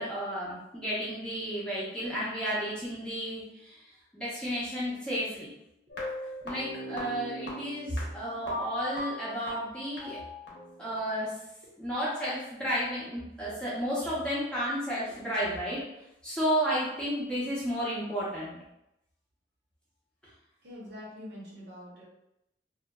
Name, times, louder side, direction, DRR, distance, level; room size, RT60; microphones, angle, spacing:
voice 1, 0.0-3.8 4.1-5.5 6.4-10.2 10.8-11.3 11.8-15.8 16.2-18.6, equal, 5° left, -9 dB, 0.7 m, -32 dB
sound 1, 5.9-11.0, left 1 dB, 75° left, 0.8 m, -39 dB
voice 2, 20.6-22.0, left 1 dB, 65° right, -5 dB, 0.8 m, -44 dB
2.7 x 2.1 x 2.2 m, 0.86 s
head